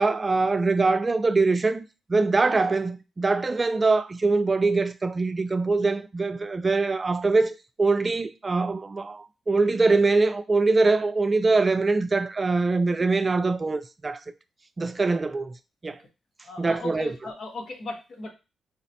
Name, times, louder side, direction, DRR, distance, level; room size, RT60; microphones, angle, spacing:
voice 1, 0.0-1.8 2.1-14.2 14.8-15.5 15.8-16.0 16.6-17.1, right 3 dB, 35° right, 0.4 m, -23 dB
voice 2, 16.4-18.3, left 3 dB, 70° left, 1.0 m, -37 dB
3.9 x 2.0 x 2.7 m
cardioid pair, 60°, 0 cm